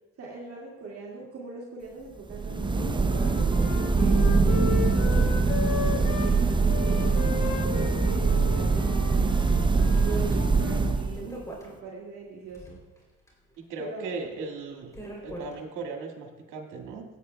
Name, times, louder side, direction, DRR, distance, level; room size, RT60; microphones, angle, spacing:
voice 1, 0.2-5.8 6.2-12.8 13.8-14.1, right 4 dB, 50° right, -4 dB, 2.0 m, -41 dB
sound 1, 2.3-11.4, right 4 dB, 15° right, 0.5 m, -23 dB
Wind instrument woodwind instrument, 2.5-6.3 6.7-10.9, left 7 dB, 75° left, 1.1 m, -36 dB
sound 2, 4.7-8.1 8.4-8.5 9.1-9.5 9.9-11.8 12.3-15.6, right 1 dB, 10° left, 3.2 m, -45 dB
voice 2, 13.6-14.9 15.2-17.0, right 4 dB, 80° right, 2 dB, 1.8 m, -37 dB
17.0 x 8.3 x 2.3 m, 1.1 s
cardioid pair, 90°, 31 cm